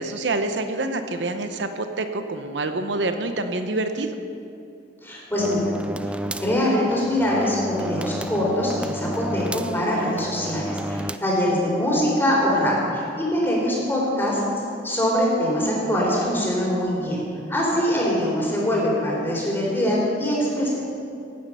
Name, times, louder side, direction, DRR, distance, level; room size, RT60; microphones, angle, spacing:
voice 1, 0.0-4.2, right 2 dB, 90° right, 7 dB, 0.8 m, -27 dB
voice 2, 5.0-5.7 6.4-14.4 14.8-17.2 17.5-20.7, equal, 15° left, -4 dB, 3.8 m, -23 dB
sound 1, 5.4-11.2, equal, 5° right, 0.3 m, -32 dB
17.0 x 9.6 x 5.6 m, 2.6 s
head